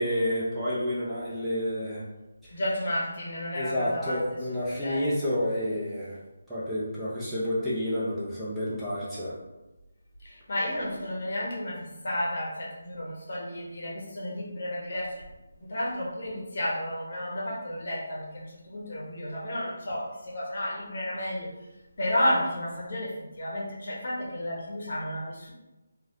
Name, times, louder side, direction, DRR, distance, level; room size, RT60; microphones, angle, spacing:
voice 1, 0.0-2.0 3.5-6.2 6.5-9.3, equal, 5° right, -12 dB, 0.6 m, -29 dB
voice 2, 2.5-4.2 4.8-5.1 10.2-15.2 15.7-21.5 22.0-25.5, left 1 dB, 55° left, -4 dB, 0.9 m, -32 dB
3.1 x 2.4 x 2.7 m, 1.0 s
figure-of-eight pair, 160°, 0 cm